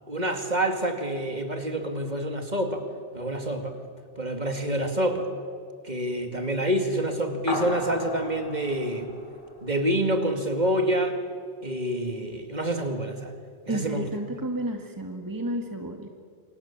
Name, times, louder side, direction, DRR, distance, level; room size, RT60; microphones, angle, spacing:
voice 1, 0.1-2.8 3.1-3.8 4.2-5.3 5.8-9.1 9.6-11.2 11.6-13.3 13.7-14.1, right 1 dB, 40° right, 5 dB, 2.5 m, -27 dB
sound 1, 7.5-10.2, left 1 dB, 45° left, 2.1 m, -36 dB
voice 2, 13.7-16.1, right 1 dB, 20° right, 4 dB, 1.8 m, -31 dB
28.0 x 25.5 x 7.4 m, 2.2 s
omnidirectional pair, 1.2 m